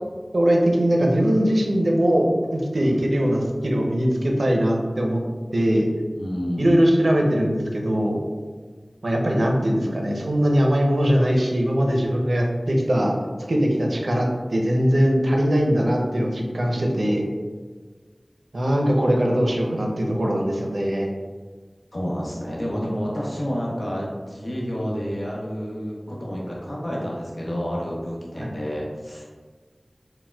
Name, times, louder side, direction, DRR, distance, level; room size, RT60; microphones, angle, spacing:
voice 1, 0.3-5.2 5.5-5.9 6.6-8.2 9.0-13.1 13.5-17.2 18.5-21.1 28.4-28.5, equal, 80° right, 0 dB, 0.5 m, -21 dB
voice 2, 6.2-6.7 21.9-29.3, equal, 60° left, -4 dB, 0.8 m, -29 dB
4.2 x 2.1 x 2.2 m, 1.5 s
wide cardioid pair, 55°, 0 cm